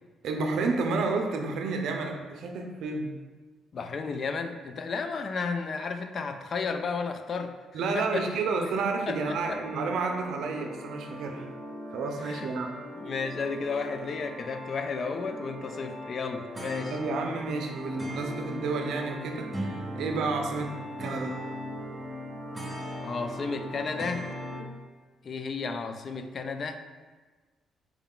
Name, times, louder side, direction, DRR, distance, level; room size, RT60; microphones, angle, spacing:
voice 1, 0.2-3.1 7.7-11.5 11.9-12.8 16.9-21.3, right 4 dB, 80° right, 3 dB, 0.5 m, -30 dB
voice 2, 3.7-7.6 7.9-8.2 8.6-8.7 9.1-9.6 12.2-12.5 13.0-17.0 23.0-24.3 25.2-26.8, left 4 dB, 50° left, 8 dB, 0.3 m, -33 dB
sound 1, 9.2-24.6, equal, 15° right, 1.0 m, -39 dB
4.5 x 2.3 x 3.6 m, 1.3 s
cardioid pair, 90°, 0 cm